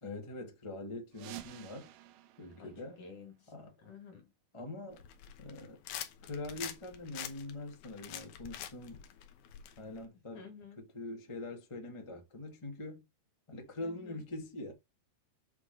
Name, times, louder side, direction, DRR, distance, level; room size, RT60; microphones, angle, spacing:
voice 1, 0.0-1.9 2.4-3.0 3.5-3.7 4.5-5.0 5.4-5.8 6.2-9.0 9.8-10.5 10.8-13.0 13.5-14.7, left 2 dB, 30° left, 0.5 m, -43 dB
sound 1, 1.1-3.7, right 13 dB, 85° right, 2.6 m, -51 dB
voice 2, 2.6-3.5 3.8-4.3 10.3-10.8 13.8-14.2, left 5 dB, 55° left, 3.7 m, -52 dB
sound 2, 4.9-10.0, left 11 dB, 80° left, 2.7 m, -46 dB
8.1 x 3.6 x 5.3 m
omnidirectional pair, 4.4 m